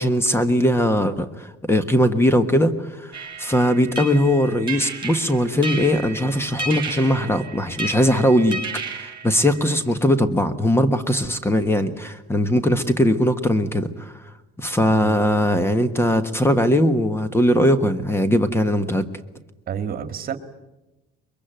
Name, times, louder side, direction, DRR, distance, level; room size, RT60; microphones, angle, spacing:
voice 1, 0.0-3.1 3.4-8.6 8.9-14.1 14.6-19.0, equal, 10° left, 11 dB, 1.4 m, -20 dB
sound 1, 3.1-9.8, right 3 dB, 25° right, 5.8 m, -33 dB
voice 2, 14.9-15.2 19.7-20.4, right 8 dB, 50° right, 10 dB, 1.9 m, -29 dB
23.0 x 22.5 x 9.1 m, 1.0 s
cardioid pair, 115°, 20 cm